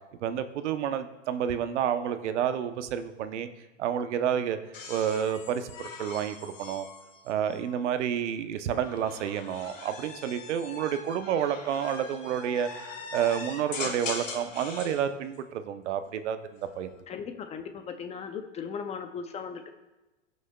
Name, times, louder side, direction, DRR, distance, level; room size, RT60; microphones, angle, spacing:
voice 1, 0.2-3.5 3.8-4.6 4.9-6.9 7.2-12.7 13.1-16.4 16.8-16.9, right 9 dB, 65° right, 10 dB, 0.8 m, -29 dB
sound 1, 4.7-8.0 8.8-15.0 16.5-17.0, left 4 dB, 85° left, 1.8 m, -41 dB
voice 2, 17.1-19.7, left 6 dB, 20° left, 7 dB, 0.5 m, -37 dB
17.5 x 6.3 x 2.3 m, 1.1 s
hypercardioid pair, 110°, 38 cm